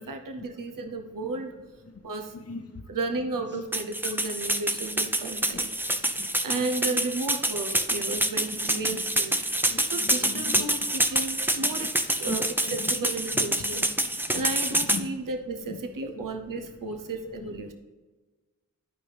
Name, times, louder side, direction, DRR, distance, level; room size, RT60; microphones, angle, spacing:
voice 1, 0.0-1.5 2.0-2.3 2.9-9.4 9.9-17.7, right 3 dB, 85° right, 6 dB, 0.9 m, -34 dB
voice 2, 2.3-2.8 3.5-3.6 5.9-6.3 6.9-7.0 8.1-8.2 9.6-10.7 11.6-11.7 12.2-12.4 12.7-12.9 13.3-13.4 14.2-14.4 14.9-15.1 15.7-15.8 16.2-16.3 17.4-17.7, left 4 dB, 50° left, 6 dB, 0.9 m, -39 dB
sound 1, 3.7-15.0, right 1 dB, 5° right, 0.7 m, -27 dB
12.0 x 5.1 x 3.4 m, 1.3 s
wide cardioid pair, 55°, 32 cm